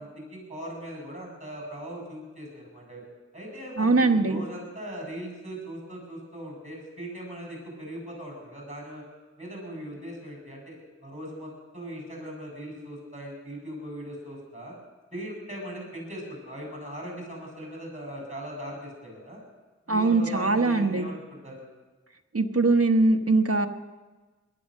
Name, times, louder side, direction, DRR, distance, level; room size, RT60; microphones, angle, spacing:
voice 1, 0.0-3.0 3.3-9.0 9.4-14.7 15.1-19.4 19.9-21.7, equal, 25° right, 0 dB, 7.4 m, -39 dB
voice 2, 3.8-4.4 19.9-21.1 22.3-23.7, right 3 dB, 55° right, 6 dB, 1.2 m, -22 dB
18.0 x 11.5 x 6.5 m, 1.3 s
wide cardioid pair, 50°, 29 cm